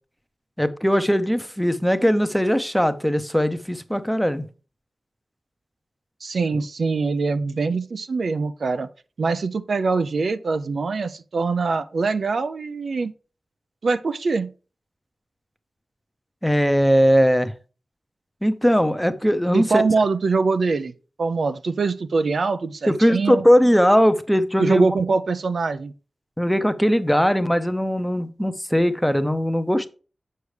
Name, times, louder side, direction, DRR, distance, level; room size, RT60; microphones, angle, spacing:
voice 1, 0.6-4.5 16.4-17.5 18.4-19.8 22.9-24.9 26.4-29.9, equal, 5° left, 0.7 m, -19 dB
voice 2, 6.2-8.9 9.2-13.1 13.8-14.5 19.5-20.9 21.2-23.4 24.6-25.9, right 4 dB, 75° right, 0.5 m, -23 dB
6.9 x 6.5 x 3.2 m
wide cardioid pair, 75°, 0 cm